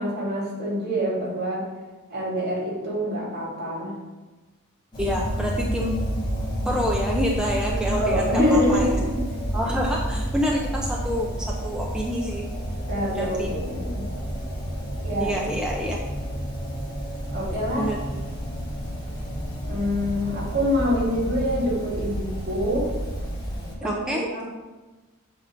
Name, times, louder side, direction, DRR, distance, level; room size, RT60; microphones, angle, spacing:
voice 1, 0.0-1.6 2.1-3.9 7.7-9.2 12.9-14.0 15.0-15.5 17.3-17.9 19.6-22.9 23.8-24.4, equal, 45° right, -6 dB, 2.2 m, -26 dB
sound 1, 4.9-23.7, equal, 20° left, 1.6 m, -30 dB
voice 2, 5.0-6.0 6.6-8.9 9.5-12.5 13.1-13.5 15.2-16.0 17.8-18.2 23.8-24.2, equal, 5° right, -2 dB, 0.4 m, -27 dB
7.5 x 3.6 x 4.4 m, 1.2 s
head